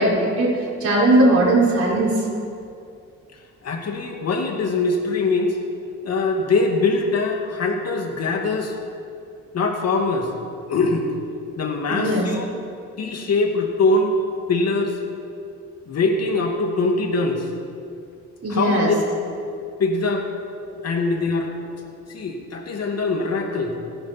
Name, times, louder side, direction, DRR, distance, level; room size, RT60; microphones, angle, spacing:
voice 1, 0.0-2.2 11.9-12.3 18.4-18.9, right 1 dB, 50° right, -4 dB, 5.0 m, -18 dB
voice 2, 3.6-5.6 6.0-8.8 9.5-10.3 10.7-11.0 11.6-12.5 13.0-14.2 14.5-15.0 15.9-17.5 18.5-18.9 19.3-19.4 19.8-20.3 20.8-21.5 22.1-23.7, left 3 dB, 55° left, 2 dB, 2.3 m, -22 dB
27.0 x 10.5 x 4.4 m, 2.4 s
cardioid pair, 90°, 30 cm